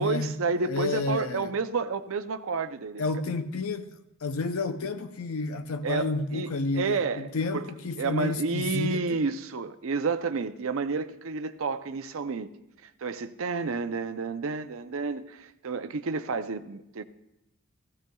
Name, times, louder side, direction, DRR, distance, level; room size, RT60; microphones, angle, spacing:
voice 1, 0.0-3.0 5.8-7.3 7.5-7.7 8.0-12.5 13.0-17.0, right 4 dB, 65° right, 0.5 m, -30 dB
voice 2, 0.6-1.5 3.0-3.9 4.2-9.2, left 3 dB, 70° left, 0.6 m, -30 dB
15.5 x 15.0 x 2.3 m
head